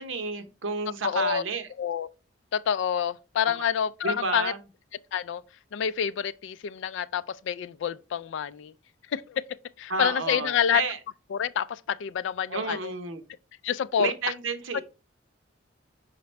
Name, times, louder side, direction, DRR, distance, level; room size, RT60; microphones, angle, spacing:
voice 1, 0.0-1.7 4.0-4.6 9.9-11.0 12.5-13.2 14.0-14.8, right 4 dB, 85° right, 0.8 m, -31 dB
voice 2, 1.0-1.4 1.8-2.1 2.5-4.5 5.1-5.4 5.7-8.7 9.1-9.4 9.8-10.8 11.3-12.9 13.6-14.3 14.7-14.8, left 8 dB, 70° left, 0.3 m, -28 dB
5.7 x 5.2 x 3.2 m
head